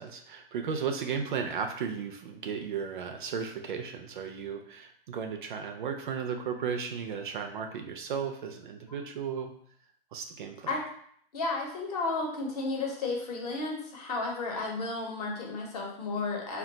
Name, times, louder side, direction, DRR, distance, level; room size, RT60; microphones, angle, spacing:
voice 1, 0.0-9.5 10.1-10.7, right 6 dB, 55° right, 5 dB, 0.4 m, -35 dB
voice 2, 11.3-16.6, left 3 dB, 40° left, 0 dB, 0.8 m, -33 dB
2.3 x 2.2 x 3.8 m, 0.64 s
hypercardioid pair, 150°, 31 cm